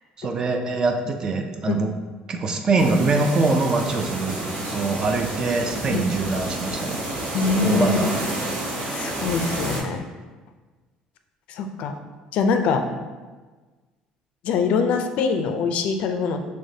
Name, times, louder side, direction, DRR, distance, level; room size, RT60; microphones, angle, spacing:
voice 1, 0.2-1.9 2.3-4.4 4.7-7.0 7.6-8.1, right 3 dB, 30° right, 5 dB, 0.4 m, -23 dB
sound 1, 2.8-9.8, right 1 dB, 60° right, 1.1 m, -30 dB
voice 2, 7.3-8.1 8.9-10.0 11.5-11.9 12.3-12.8 14.4-16.4, left 4 dB, 65° left, 6 dB, 0.3 m, -23 dB
6.2 x 2.1 x 2.7 m, 1.3 s
cardioid pair, 140°, 2 cm